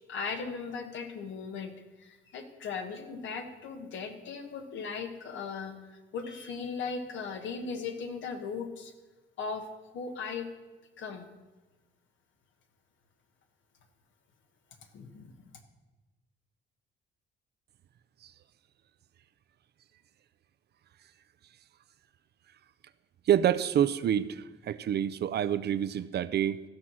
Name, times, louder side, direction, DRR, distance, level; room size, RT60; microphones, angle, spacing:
voice 1, 0.1-8.9 9.4-9.7 9.9-10.5 11.0-11.3 14.9-15.5, left 5 dB, 75° left, 6 dB, 1.4 m, -38 dB
voice 2, 23.3-26.6, right 10 dB, 55° right, 15 dB, 0.5 m, -27 dB
14.0 x 5.7 x 6.2 m, 1.2 s
cardioid pair, 90°, 20 cm